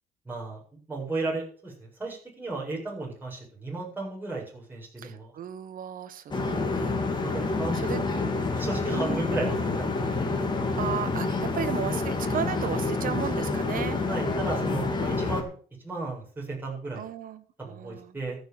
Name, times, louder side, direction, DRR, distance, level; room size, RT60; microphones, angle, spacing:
voice 1, 0.3-0.6 0.9-5.3 7.2-8.1 8.5-10.1 14.1-15.5 15.8-17.0 17.7-18.4, right 3 dB, 10° right, -4 dB, 7.7 m, -34 dB
voice 2, 5.0-6.9 7.7-8.0 8.9-9.3 10.7-14.0 17.0-18.2, right 9 dB, 55° right, 12 dB, 1.5 m, -35 dB
sound 1, 6.3-15.4, left 3 dB, 25° left, 3.0 m, -28 dB
14.5 x 6.5 x 7.5 m, 0.43 s
cardioid pair, 110°, 17 cm